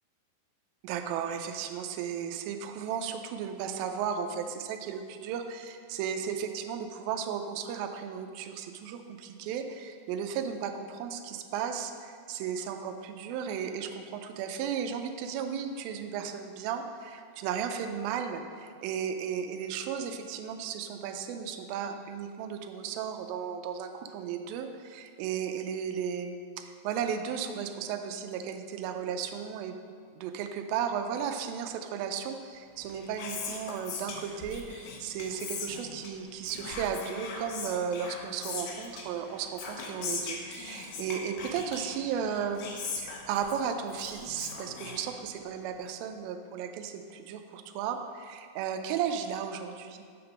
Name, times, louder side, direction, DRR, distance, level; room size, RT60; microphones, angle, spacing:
voice 1, 0.8-29.8 30.1-42.6 43.0-50.0, right 7 dB, 85° right, 6 dB, 2.1 m, -35 dB
Whispering, 32.7-45.6, left 4 dB, 75° left, 2.2 m, -40 dB
7.8 x 3.4 x 5.7 m, 2.2 s
omnidirectional pair, 4.6 m